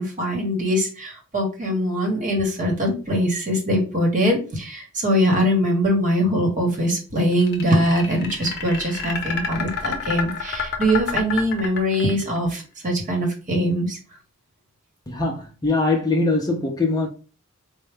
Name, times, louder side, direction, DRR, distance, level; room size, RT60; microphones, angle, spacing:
voice 1, 0.0-14.0, equal, 35° right, 1.1 m, -22 dB
sound 1, 7.3-12.4, left 6 dB, 45° left, 0.8 m, -28 dB
voice 2, 15.1-17.1, left 3 dB, 15° left, 0.6 m, -22 dB
4.3 x 2.1 x 3.4 m
head